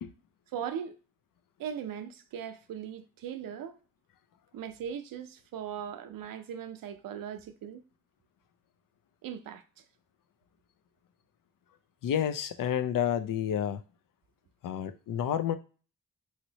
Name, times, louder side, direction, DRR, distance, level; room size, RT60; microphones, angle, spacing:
voice 1, 0.5-1.0 1.6-3.8 4.5-7.8 9.2-9.6, right 8 dB, 75° right, 0.6 m, -39 dB
voice 2, 12.0-13.8 14.6-15.6, left 9 dB, 70° left, 0.5 m, -30 dB
3.1 x 2.9 x 2.7 m
supercardioid pair, 40°, 34 cm